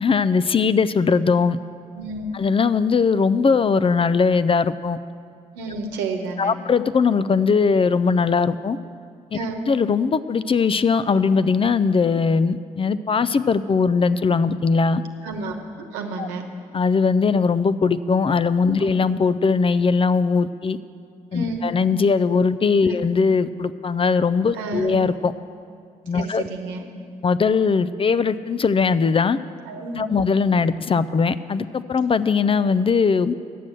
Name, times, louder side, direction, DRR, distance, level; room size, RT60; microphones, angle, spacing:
voice 1, 0.0-1.6 2.3-5.0 6.4-8.8 9.3-9.4 9.7-15.0 16.2-16.3 16.7-20.8 21.3-25.3 26.1-26.4 27.2-29.4 30.0-33.3, left 5 dB, 30° left, 14 dB, 0.5 m, -20 dB
voice 2, 2.0-2.3 5.5-6.6 9.3-9.6 15.2-15.5 15.9-16.4 18.7-18.9 21.3-21.6 24.5-24.9 26.1-26.8 29.7-30.0, right 3 dB, 85° right, 3 dB, 1.1 m, -30 dB
10.0 x 7.4 x 7.7 m, 2.3 s
hypercardioid pair, 50°, 18 cm